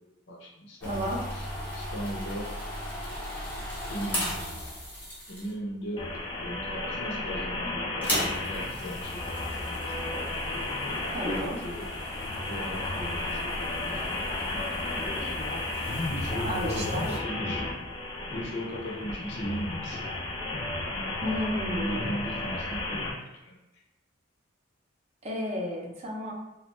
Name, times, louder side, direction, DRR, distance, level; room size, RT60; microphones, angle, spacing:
voice 1, 0.3-1.5 1.7-2.6 3.9-4.7 5.3-10.2 11.2-11.9 12.5-14.1 14.8-15.3 16.1-17.7 18.3-20.0 21.4-23.1 23.4-23.6, equal, 65° left, -1 dB, 0.6 m, -38 dB
sound 1, 0.8-5.7 6.5-6.9 7.2-7.3 7.9-17.2, equal, 10° left, 0.7 m, -37 dB
voice 2, 0.9-1.2 11.1-11.6 16.4-17.2 21.2-22.1 25.2-26.3, equal, 35° right, -3 dB, 0.5 m, -32 dB
sound 2, 6.0-23.1, left 2 dB, 25° left, 0.3 m, -33 dB
2.5 x 2.1 x 3.0 m, 0.97 s
head